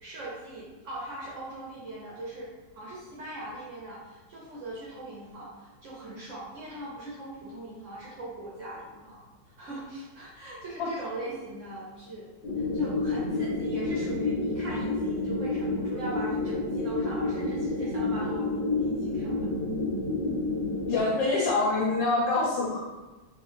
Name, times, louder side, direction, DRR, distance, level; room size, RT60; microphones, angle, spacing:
voice 1, 0.0-2.5 2.7-9.2 9.5-12.3 12.6-18.5 18.7-19.5, right 2 dB, 65° right, -6 dB, 0.8 m, -40 dB
sound 1, 12.4-21.0, left 2 dB, 60° left, 0.7 m, -29 dB
voice 2, 20.9-22.8, left 3 dB, 80° left, -3 dB, 1.3 m, -25 dB
3.1 x 2.4 x 3.1 m, 1.2 s
omnidirectional pair, 2.0 m